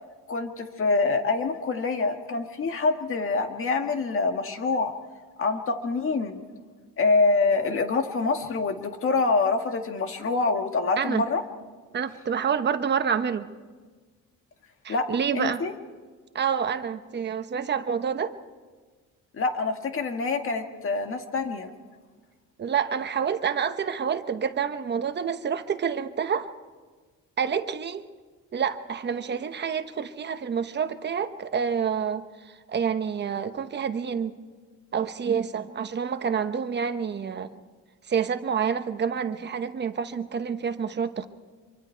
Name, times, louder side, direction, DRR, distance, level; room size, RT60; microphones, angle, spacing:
voice 1, 0.3-4.9 5.4-6.4 7.0-11.4 14.9-15.1 15.3-15.7 19.3-21.7, left 3 dB, 40° left, 6 dB, 1.8 m, -25 dB
voice 2, 11.9-13.5 14.8-15.6 16.3-18.4 22.6-26.5 27.4-28.1 28.5-34.3 34.9-37.5 38.1-41.3, right 7 dB, 35° right, 9 dB, 1.0 m, -28 dB
26.0 x 24.0 x 4.6 m, 1.4 s
cardioid pair, 155°, 32 cm